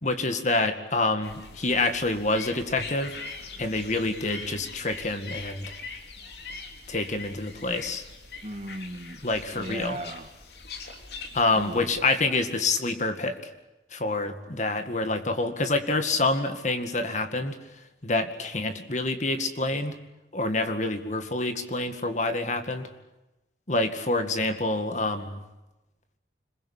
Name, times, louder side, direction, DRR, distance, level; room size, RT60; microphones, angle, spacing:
voice 1, 0.0-3.2 3.6-5.7 6.9-8.1 9.2-10.0 11.3-13.4 13.9-17.6 18.0-20.0 20.3-22.9 23.7-25.4, left 2 dB, 40° left, 8 dB, 2.1 m, -27 dB
sound 1, 1.2-12.1, left 4 dB, 65° left, 3.5 m, -42 dB
voice 2, 8.4-9.2 9.5-10.3 10.8-11.0 11.5-11.9, right 1 dB, 40° right, 6 dB, 2.2 m, -38 dB
26.0 x 22.5 x 8.4 m, 1.0 s
head